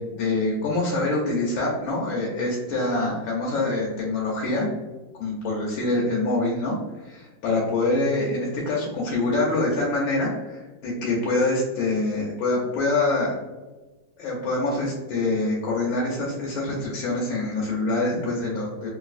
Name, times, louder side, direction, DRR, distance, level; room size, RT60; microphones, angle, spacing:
voice 1, 0.0-4.7 5.2-6.8 7.0-13.4 14.2-18.9, left 2 dB, 80° left, -4 dB, 1.4 m, -25 dB
3.2 x 2.5 x 2.4 m, 1.2 s
omnidirectional pair, 2.1 m